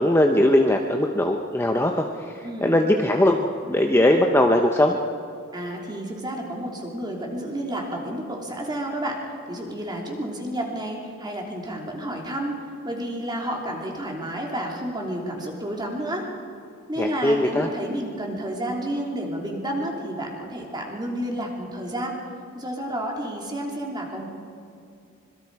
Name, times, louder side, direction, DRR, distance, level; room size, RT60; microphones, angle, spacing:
voice 1, 0.0-2.1 2.3-5.0 17.0-17.7, left 1 dB, 10° left, 2 dB, 0.9 m, -20 dB
voice 2, 2.4-2.8 5.5-9.2 9.5-12.6 12.8-16.2 16.9-22.1 22.5-24.3, right 1 dB, 20° right, 0 dB, 3.2 m, -30 dB
25.5 x 22.5 x 4.8 m, 2.5 s
head